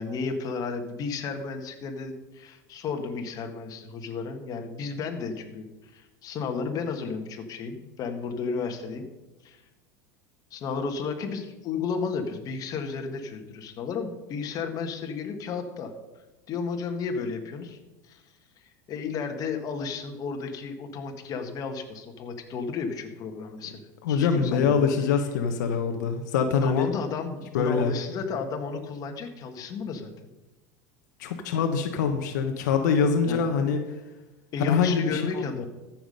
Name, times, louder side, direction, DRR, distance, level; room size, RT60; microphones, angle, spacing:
voice 1, 0.0-9.0 9.4-9.6 10.5-15.9 16.5-17.8 18.0-18.2 18.9-23.8 24.1-24.9 26.6-30.3 33.2-33.4 34.5-35.7, left 5 dB, 40° left, 5 dB, 1.7 m, -33 dB
voice 2, 24.0-26.9 27.5-27.9 31.2-33.8 34.6-35.7, left 6 dB, 85° left, 6 dB, 1.1 m, -24 dB
14.0 x 6.1 x 5.3 m, 1.1 s
supercardioid pair, 120°, 9 cm